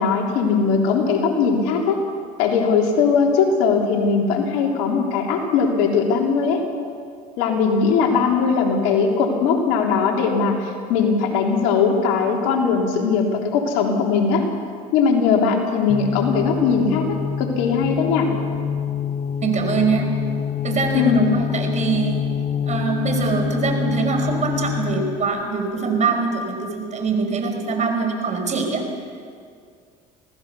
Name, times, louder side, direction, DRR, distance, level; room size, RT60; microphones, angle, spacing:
voice 1, 0.0-2.0 2.4-6.6 7.4-14.4 14.9-18.3 20.9-21.3, left 5 dB, 80° left, 1 dB, 3.6 m, -20 dB
sound 1, 15.9-25.3, left 7 dB, 35° left, 1.1 m, -26 dB
voice 2, 19.4-20.1 20.6-22.3 22.7-28.8, right 4 dB, 35° right, 4 dB, 5.3 m, -23 dB
26.5 x 18.0 x 7.0 m, 2.2 s
supercardioid pair, 80°, 19 cm